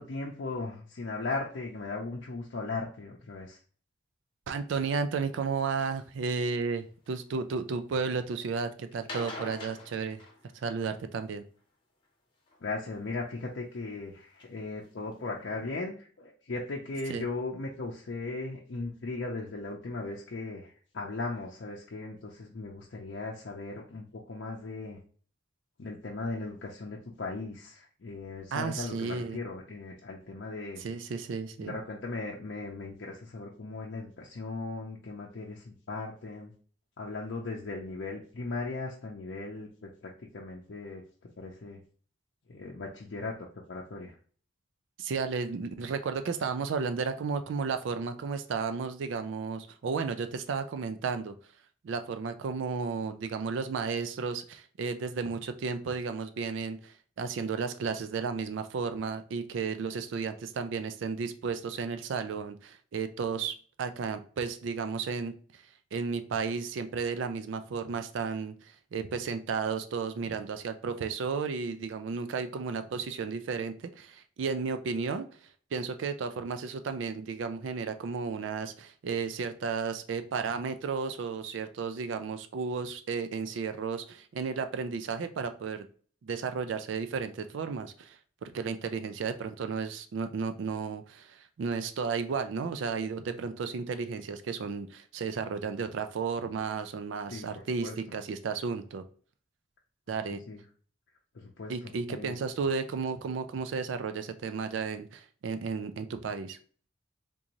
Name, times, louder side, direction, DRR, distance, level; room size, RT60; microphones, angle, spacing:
voice 1, 0.0-3.6 12.6-25.0 25.8-30.8 31.6-36.5 37.0-41.0 41.4-41.8 42.5-43.3 43.7-44.2 97.3-98.0 100.5-100.6 101.3-102.4, left 3 dB, 70° left, -2 dB, 0.6 m, -38 dB
voice 2, 4.5-10.2 10.5-11.4 17.1-17.2 28.5-29.4 30.8-31.7 45.0-51.3 51.8-65.4 65.9-75.3 75.7-85.9 86.2-99.0 100.1-100.4 101.7-106.6, right 5 dB, 85° right, 9 dB, 0.4 m, -33 dB
sound 1, 5.8-6.0 6.7-7.4 8.9-10.9 12.5-13.0 13.7-13.8 14.4-14.5 14.8-14.9 15.1-15.2, left 2 dB, 25° left, 0.8 m, -44 dB
3.7 x 2.6 x 2.9 m, 0.44 s
head